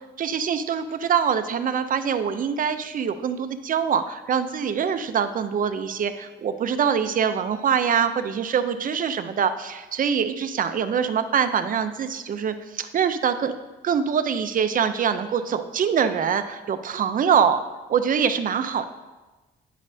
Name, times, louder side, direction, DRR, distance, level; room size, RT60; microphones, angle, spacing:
voice 1, 0.2-13.6 13.8-17.6 17.9-18.9, right 7 dB, 45° right, 10 dB, 0.5 m, -24 dB
9.0 x 5.3 x 2.7 m, 1.2 s
cardioid pair, 90°, 20 cm